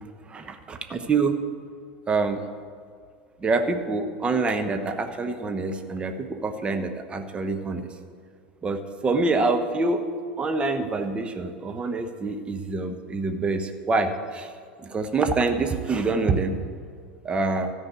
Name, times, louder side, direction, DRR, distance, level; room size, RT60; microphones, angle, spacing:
voice 1, 0.3-1.4 2.1-2.4 3.4-7.9 8.6-10.0 10.4-14.5 14.8-16.6 17.2-17.7, right 3 dB, 20° right, 6 dB, 1.0 m, -26 dB
13.5 x 5.3 x 8.3 m, 2.1 s
figure-of-eight pair, 85°, 6 cm